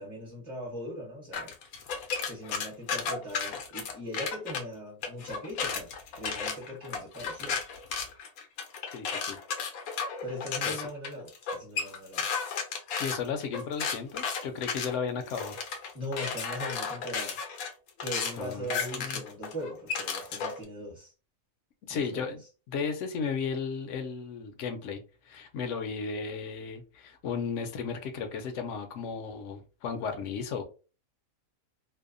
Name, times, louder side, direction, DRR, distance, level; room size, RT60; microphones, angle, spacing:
voice 1, 0.0-1.5 2.3-5.9 6.2-7.6 10.2-12.3 15.9-17.4 18.0-21.1 21.9-22.3, equal, 20° right, 0.7 m, -40 dB
sound 1, 1.3-4.6 5.0-20.6, left 5 dB, 85° left, 1.1 m, -34 dB
voice 2, 8.9-9.4 10.7-10.9 13.0-15.6 18.4-19.2 21.9-22.4 22.7-25.0 25.3-30.6, left 5 dB, 70° left, 0.8 m, -34 dB
2.6 x 2.1 x 2.4 m
omnidirectional pair, 1.5 m